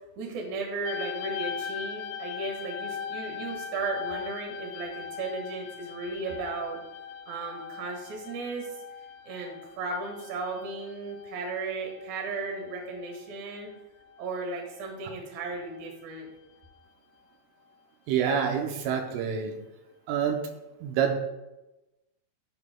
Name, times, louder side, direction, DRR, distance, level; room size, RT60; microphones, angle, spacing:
voice 1, 0.2-6.8 7.3-8.7 9.3-13.7 14.2-16.3, right 3 dB, 60° right, 0 dB, 2.0 m, -35 dB
sound 1, 0.9-13.8 14.1-14.9 15.6-15.9, left 7 dB, 90° left, 3.3 m, -40 dB
voice 2, 18.1-19.6 20.1-20.5 20.8-21.2, right 7 dB, 80° right, 3 dB, 3.2 m, -27 dB
14.0 x 7.5 x 2.3 m, 1.0 s
omnidirectional pair, 5.9 m